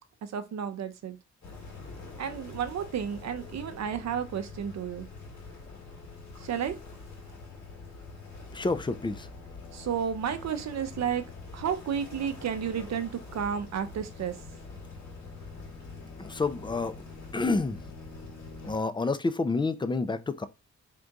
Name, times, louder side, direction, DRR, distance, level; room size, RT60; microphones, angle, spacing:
voice 1, 0.2-1.2 2.2-5.1 6.4-6.7 9.7-11.2 11.5-14.4, right 8 dB, 65° right, 0.6 m, -32 dB
sound 1, 1.4-18.8, left 3 dB, 75° left, 2.1 m, -45 dB
voice 2, 8.5-9.3 16.2-16.9 17.3-17.8 18.6-20.5, left 3 dB, 15° left, 0.4 m, -29 dB
3.6 x 2.6 x 4.5 m
wide cardioid pair, 125°, 29 cm